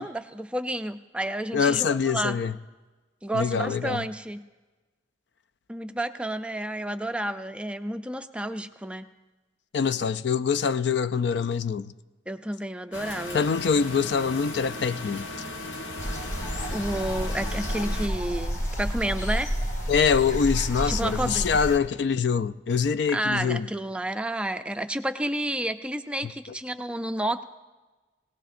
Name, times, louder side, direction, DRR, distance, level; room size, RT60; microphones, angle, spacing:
voice 1, 0.0-2.4 3.2-4.4 5.7-9.1 12.3-13.5 16.7-19.5 20.9-21.5 23.1-27.4, right 1 dB, 5° right, 0.4 m, -30 dB
voice 2, 1.5-2.6 3.3-4.0 9.7-11.9 13.3-15.3 19.9-23.7, left 6 dB, 65° left, 0.4 m, -24 dB
sound 1, 12.9-18.1, left 2 dB, 80° left, 1.3 m, -37 dB
sound 2, 16.0-21.8, equal, 40° left, 1.5 m, -30 dB
21.0 x 17.5 x 2.5 m
head